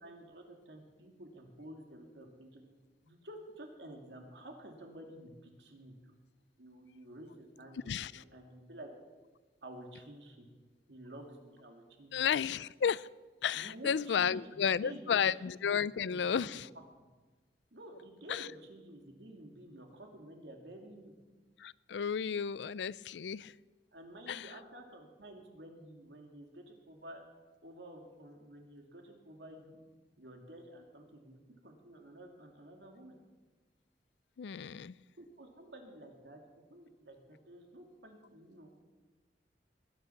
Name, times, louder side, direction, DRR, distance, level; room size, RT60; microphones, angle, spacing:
voice 1, 0.0-2.6 3.0-6.1 6.6-8.9 9.6-10.5 10.9-12.2 13.5-15.4 15.8-16.6 17.7-21.1 23.9-27.2 27.6-29.8 30.2-31.4 31.6-33.2 35.2-36.4 36.7-38.8, right 1 dB, 75° right, 2 dB, 2.7 m, -51 dB
voice 2, 7.9-8.2 12.1-13.1 13.4-16.7 18.3-18.4 21.6-23.5 24.3-24.5 34.4-35.0, left 7 dB, 80° left, 20 dB, 0.4 m, -33 dB
20.5 x 10.5 x 5.8 m, 1.3 s
head